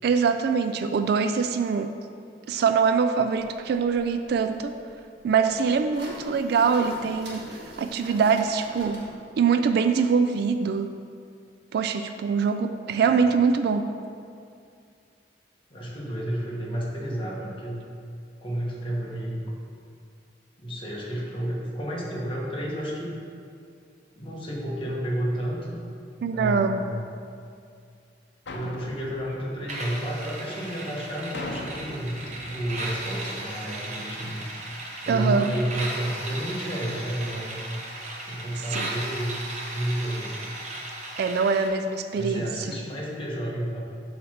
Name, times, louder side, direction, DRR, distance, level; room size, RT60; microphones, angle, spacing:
voice 1, 0.0-1.9 2.5-4.7 5.2-9.0 9.4-10.9 11.7-13.9 26.2-26.8 35.1-35.5 38.7-38.9 41.2-42.4, right 5 dB, 65° right, 8 dB, 0.3 m, -23 dB
sound 1, 3.4-9.2, right 1 dB, 80° right, 1.6 m, -45 dB
voice 2, 15.7-17.8 18.4-19.5 20.6-23.1 24.2-25.8 26.3-27.1 28.5-34.4 35.0-37.7 38.3-39.4 39.7-40.4 42.1-43.8, right 1 dB, 30° left, -4 dB, 1.3 m, -31 dB
sound 2, 28.5-30.4 31.3-33.3, left 2 dB, 75° left, 0.7 m, -40 dB
sound 3, 29.7-41.7, right 1 dB, 40° right, 1.0 m, -36 dB
7.8 x 3.2 x 6.4 m, 2.3 s
head